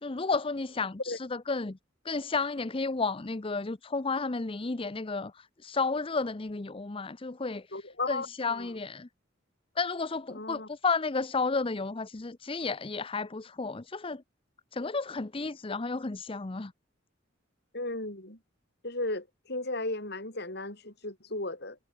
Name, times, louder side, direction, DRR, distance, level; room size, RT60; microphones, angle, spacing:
voice 1, 0.0-1.8 2.0-9.1 9.8-14.2 14.7-16.7, left 4 dB, 30° left, 0.7 m, -32 dB
voice 2, 7.7-8.7 10.3-10.7 17.7-18.4 18.8-21.8, left 2 dB, 55° left, 7.6 m, -35 dB
head